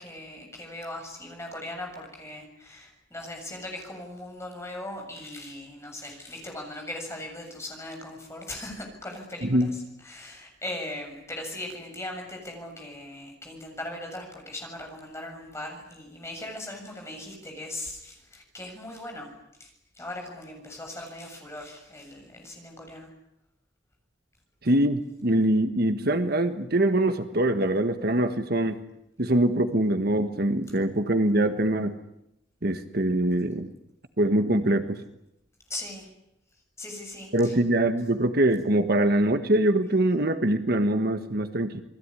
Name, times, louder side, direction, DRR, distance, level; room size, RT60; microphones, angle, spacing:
voice 1, 0.0-19.3 19.6-23.1 35.7-36.1 36.8-37.6, left 1 dB, 15° left, 2 dB, 7.4 m, -39 dB
voice 2, 24.6-28.8 29.2-32.0 32.6-33.7 34.2-35.0 37.3-41.8, right 1 dB, 50° right, 8 dB, 1.5 m, -23 dB
29.0 x 21.0 x 9.9 m, 0.85 s
head